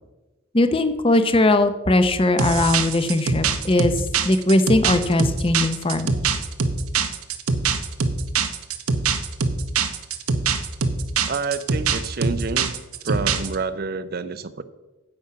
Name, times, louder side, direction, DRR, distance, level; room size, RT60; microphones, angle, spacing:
voice 1, 0.5-6.2, left 2 dB, 25° left, 10 dB, 0.6 m, -20 dB
sound 1, 2.4-13.5, right 5 dB, 85° right, 1.0 m, -23 dB
voice 2, 11.2-12.8 13.0-14.6, right 4 dB, 45° right, 13 dB, 0.5 m, -28 dB
9.7 x 8.4 x 5.6 m, 1.1 s
head